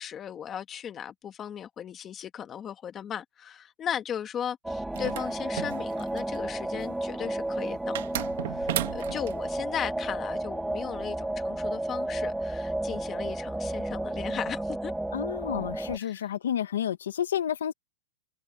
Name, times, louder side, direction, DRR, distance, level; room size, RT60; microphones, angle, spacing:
voice 1, 0.0-14.9 16.0-16.2, left 9 dB, 20° left, 1.8 m, -37 dB
sound 1, 4.6-16.0, right 1 dB, 5° right, 2.3 m, -32 dB
sound 2, 4.9-6.4 8.0-9.4, right 14 dB, 65° right, 2.0 m, -34 dB
voice 2, 15.1-17.7, left 9 dB, 90° left, 1.6 m, -30 dB
hypercardioid pair, 150°, 0 cm